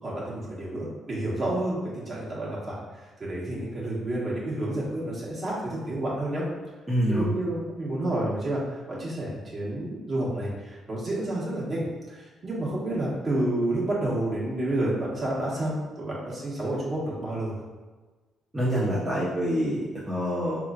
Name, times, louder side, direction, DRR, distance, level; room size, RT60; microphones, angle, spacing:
voice 1, 0.0-2.8 3.2-6.4 7.1-17.6, right 1 dB, 40° right, -6 dB, 1.4 m, -30 dB
voice 2, 6.9-7.3 18.5-19.8 20.1-20.6, equal, 20° right, -9 dB, 0.8 m, -25 dB
4.3 x 3.0 x 2.5 m, 1.3 s
cardioid pair, 90°, 0 cm